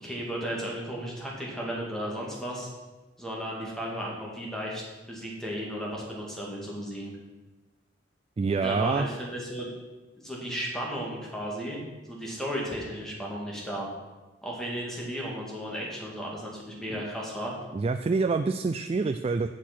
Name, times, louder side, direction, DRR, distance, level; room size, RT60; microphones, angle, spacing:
voice 1, 0.0-2.7 3.2-7.1 8.6-9.7 10.2-11.8 12.1-13.9 14.4-17.5, equal, 5° left, -3 dB, 2.1 m, -34 dB
voice 2, 8.4-9.1 16.9-17.0 17.7-19.5, right 4 dB, 30° right, 8 dB, 0.3 m, -26 dB
8.2 x 6.3 x 6.0 m, 1.2 s
head